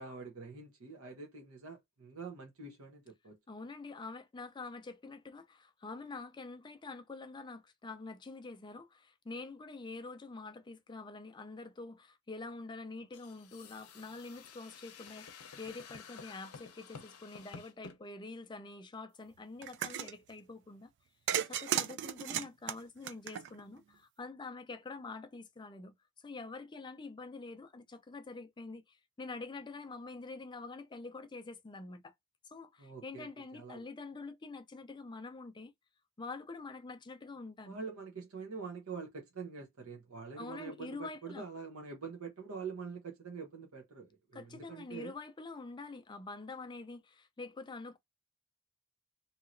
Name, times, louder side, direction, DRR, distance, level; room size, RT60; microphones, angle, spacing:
voice 1, 0.0-3.4 32.8-33.9 37.6-45.1, right 5 dB, 75° right, 0.9 m, -45 dB
voice 2, 3.5-20.9 21.4-32.1 32.5-35.7 36.2-37.8 40.4-41.5 44.3-48.0, left 3 dB, 20° left, 0.4 m, -46 dB
sound 1, 13.1-18.0, left 5 dB, 85° left, 0.6 m, -52 dB
sound 2, 19.6-20.1 21.3-23.8, right 10 dB, 55° right, 0.3 m, -35 dB
2.9 x 2.8 x 2.5 m
head